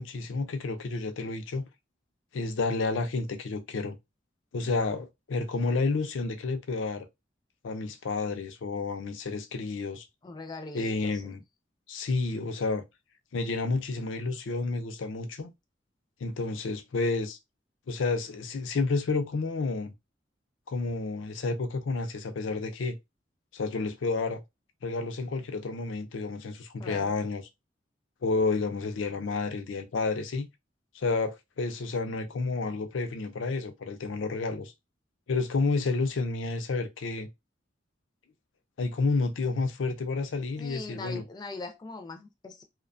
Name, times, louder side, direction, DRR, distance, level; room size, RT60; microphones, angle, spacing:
voice 1, 0.0-1.7 2.3-4.0 4.5-7.1 7.6-10.0 10.7-11.4 11.9-12.8 13.3-15.5 16.2-17.4 17.9-19.9 20.7-22.9 23.5-24.4 24.8-27.4 28.2-30.5 30.9-34.7 35.3-37.3 38.8-41.2, left 3 dB, 90° left, 0.5 m, -30 dB
voice 2, 10.2-11.4 26.8-27.1 40.6-42.6, left 3 dB, 20° left, 0.3 m, -41 dB
2.5 x 2.2 x 2.5 m
head